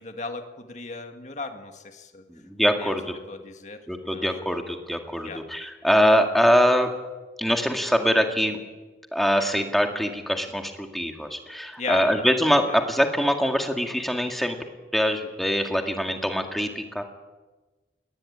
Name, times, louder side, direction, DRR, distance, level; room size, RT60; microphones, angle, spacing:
voice 1, 0.0-2.2 2.8-3.0 3.3-4.4 5.2-5.4 11.8-12.3 12.7-12.8, left 3 dB, 40° left, 5 dB, 1.9 m, -36 dB
voice 2, 2.3-3.2 3.9-6.9 7.4-8.6 9.1-14.6 14.9-17.0, equal, ahead, 3 dB, 2.0 m, -23 dB
21.0 x 19.0 x 8.8 m, 1.2 s
head